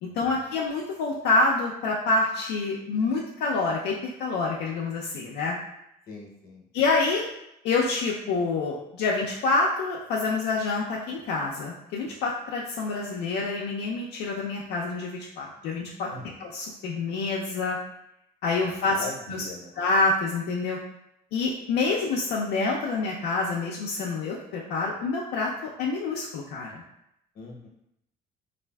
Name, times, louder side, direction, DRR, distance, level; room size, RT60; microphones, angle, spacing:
voice 1, 0.0-5.5 6.7-7.3 7.6-16.1 16.4-17.8 18.4-19.4 19.8-20.8 21.3-26.8, left 3 dB, 85° left, -3 dB, 0.4 m, -27 dB
voice 2, 6.1-6.6 16.1-16.2 18.9-19.7 27.3-27.7, left 3 dB, 60° left, -1 dB, 0.8 m, -40 dB
3.2 x 2.4 x 2.2 m, 0.81 s
cardioid pair, 110°, 17 cm